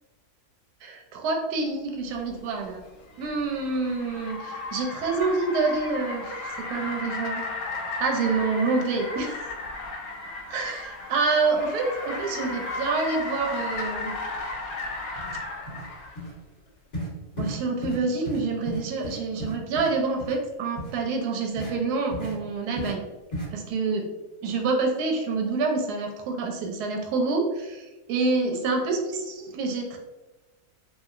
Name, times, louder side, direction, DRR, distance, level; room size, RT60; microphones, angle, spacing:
voice 1, 0.8-2.8 3.2-7.4 8.0-9.5 10.5-14.1 17.4-23.1 23.5-24.1 24.4-30.0, right 3 dB, 85° right, 2 dB, 1.1 m, -27 dB
Car, 2.3-16.2, left 2 dB, 70° left, 1.0 m, -35 dB
sound 1, 14.7-14.8 15.1-15.4 15.7-15.9 16.2-16.3 16.9-17.1 17.4-17.6 17.8-18.0 18.3-18.4 18.7-19.9 20.2-20.3 20.8-20.9 21.6-21.7 22.1-22.3 22.8-22.9 23.3-23.5, equal, 35° left, 1.3 m, -34 dB
2.8 x 2.6 x 2.4 m, 1.1 s
omnidirectional pair, 1.6 m